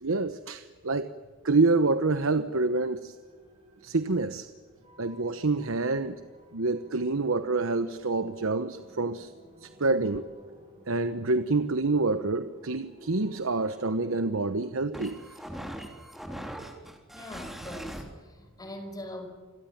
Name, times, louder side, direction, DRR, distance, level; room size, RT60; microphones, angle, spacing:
voice 1, 0.0-1.1 1.4-3.2 3.8-4.5 5.0-6.2 6.5-9.3 9.6-10.2 10.9-15.2, right 3 dB, 85° right, 10 dB, 1.0 m, -27 dB
sound 1, 2.7-14.7, right 2 dB, 30° right, 7.2 m, -53 dB
sound 2, 12.1-18.0, equal, ahead, 3.6 m, -43 dB
voice 2, 17.1-19.3, left 1 dB, 20° left, 6 dB, 5.2 m, -42 dB
28.5 x 22.0 x 7.4 m, 1.5 s
head